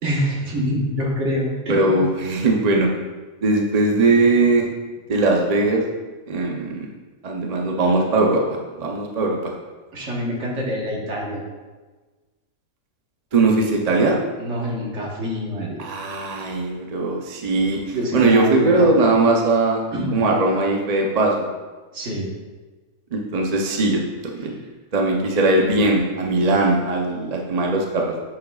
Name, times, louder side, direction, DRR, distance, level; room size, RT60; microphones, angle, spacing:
voice 1, 0.0-2.0 9.9-11.4 14.4-15.8 17.9-18.9 19.9-20.2 21.9-22.3, equal, 60° right, -2 dB, 1.6 m, -26 dB
voice 2, 1.7-2.9 3.4-4.7 5.1-5.8 6.3-6.9 7.2-8.4 8.8-9.5 13.3-14.2 15.8-19.9 20.1-21.5 23.1-24.0 24.3-24.5 24.9-28.2, right 2 dB, 40° right, 0 dB, 0.6 m, -19 dB
8.6 x 6.4 x 2.4 m, 1.3 s
omnidirectional pair, 1.5 m